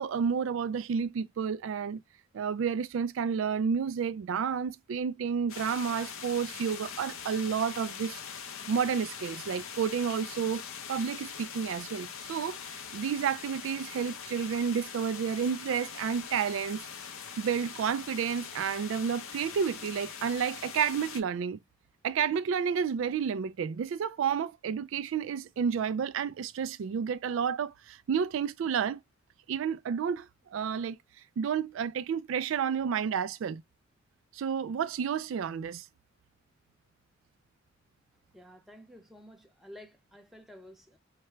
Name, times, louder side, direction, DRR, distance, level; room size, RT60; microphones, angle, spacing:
voice 1, 0.0-2.0 2.3-8.2 8.7-10.6 10.9-16.8 17.4-21.6 22.0-29.0 29.5-31.0 31.4-33.6 34.3-35.9, right 7 dB, 70° right, 0.3 m, -31 dB
sound 1, 5.5-21.2, left 7 dB, 90° left, 0.7 m, -42 dB
voice 2, 38.3-41.0, left 1 dB, ahead, 0.7 m, -51 dB
4.8 x 2.2 x 3.2 m
head